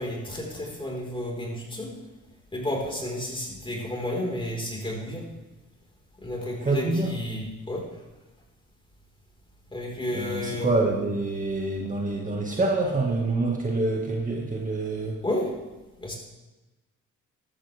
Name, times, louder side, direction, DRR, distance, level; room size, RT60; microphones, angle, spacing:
voice 1, 0.0-1.9 2.5-5.3 6.2-7.8 9.7-10.7 15.2-15.5 16.0-16.1, left 1 dB, 15° left, -2 dB, 4.8 m, -31 dB
voice 2, 6.6-7.1 10.1-15.2, right 2 dB, 25° right, -1 dB, 1.9 m, -26 dB
14.5 x 12.5 x 3.6 m, 1.1 s
cardioid pair, 90°, 30 cm